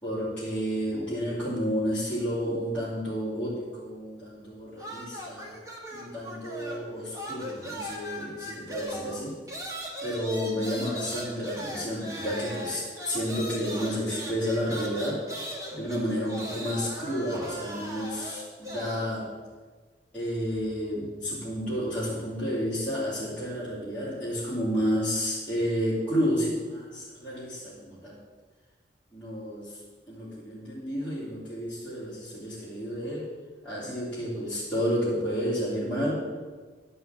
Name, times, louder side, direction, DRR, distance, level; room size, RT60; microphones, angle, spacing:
voice 1, 0.0-5.5 5.9-19.3 20.1-28.2 29.1-29.8 30.1-33.3 33.6-36.3, equal, 5° left, -12 dB, 2.9 m, -31 dB
sound 1, 4.8-6.9 7.1-19.1, equal, 20° right, 1.8 m, -39 dB
11.0 x 5.6 x 7.7 m, 1.4 s
head